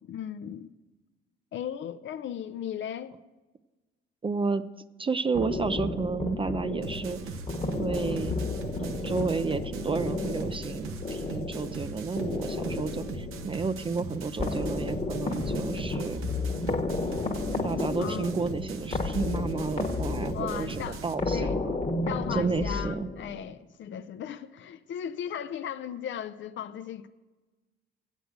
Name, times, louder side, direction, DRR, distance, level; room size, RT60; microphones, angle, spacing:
voice 1, 0.0-0.7 1.5-3.2 18.0-18.3 20.2-21.0 21.3-21.7 22.1-27.1, left 9 dB, 65° left, 0.4 m, -37 dB
voice 2, 4.2-4.6 5.0-7.2 7.8-8.4 8.8-16.2 17.6-21.8 22.3-23.1, right 4 dB, 25° right, 0.4 m, -31 dB
sound 1, 5.3-23.5, left 2 dB, 30° left, 1.1 m, -32 dB
sound 2, 6.8-21.1, right 4 dB, 85° right, 0.7 m, -40 dB
8.1 x 7.9 x 7.9 m
cardioid pair, 75°, 21 cm